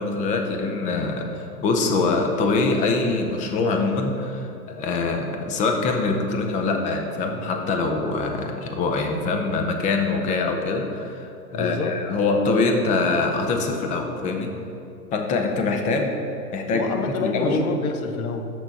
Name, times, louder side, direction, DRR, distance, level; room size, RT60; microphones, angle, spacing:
voice 1, 0.0-14.5 15.1-16.1 16.5-16.9 17.2-17.6, left 3 dB, 15° left, 3 dB, 0.6 m, -24 dB
voice 2, 11.5-12.0 16.7-18.5, left 4 dB, 60° left, 6 dB, 1.0 m, -28 dB
6.6 x 6.2 x 5.7 m, 2.7 s
hypercardioid pair, 125°, 47 cm